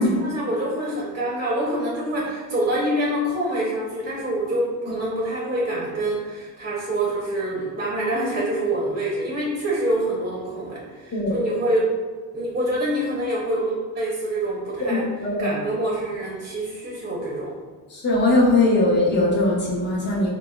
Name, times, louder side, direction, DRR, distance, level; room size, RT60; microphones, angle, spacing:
voice 1, 0.0-11.8 12.3-15.1 15.4-17.5, right 1 dB, 25° right, -4 dB, 0.6 m, -26 dB
voice 2, 14.9-15.5 17.9-20.3, left 2 dB, 25° left, -4 dB, 0.8 m, -20 dB
3.4 x 2.0 x 2.2 m, 1.5 s
cardioid pair, 75°, 39 cm